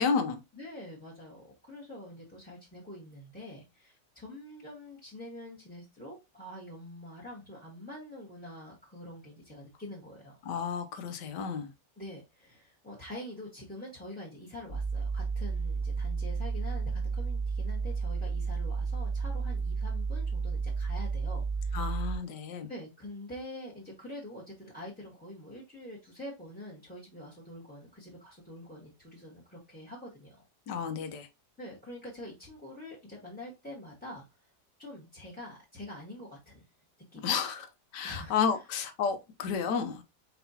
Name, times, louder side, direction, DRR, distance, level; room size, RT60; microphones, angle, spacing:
voice 1, 0.0-0.4 10.4-11.7 21.7-22.7 30.7-31.3 37.2-37.7 37.9-40.0, left 6 dB, 80° left, 1.4 m, -31 dB
voice 2, 0.5-10.4 12.0-22.2 22.7-30.4 31.6-34.5 34.8-36.7 37.1-37.7 38.0-38.4, left 1 dB, 5° left, 1.1 m, -46 dB
sound 1, 14.7-22.2, right 4 dB, 20° right, 1.1 m, -32 dB
4.8 x 4.0 x 2.8 m
omnidirectional pair, 1.8 m